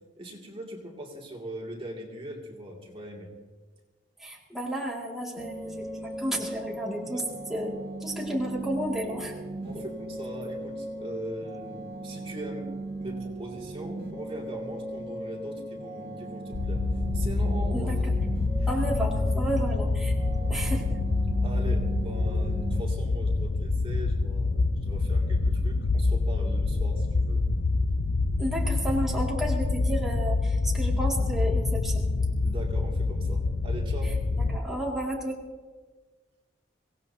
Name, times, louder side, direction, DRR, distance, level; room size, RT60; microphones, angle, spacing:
voice 1, 0.2-3.3 7.1-7.2 9.6-16.8 17.1-17.9 18.6-18.7 21.4-27.5 32.4-34.2, right 1 dB, 30° right, -2 dB, 2.5 m, -40 dB
voice 2, 4.2-7.2 7.5-9.4 17.7-18.1 18.7-21.0 28.4-32.1 34.0-35.4, equal, ahead, -4 dB, 2.3 m, -32 dB
sound 1, 5.4-22.8, right 2 dB, 60° right, 2.1 m, -38 dB
sound 2, 16.5-34.6, left 3 dB, 75° left, 0.7 m, -26 dB
24.5 x 18.0 x 2.8 m, 1.4 s
head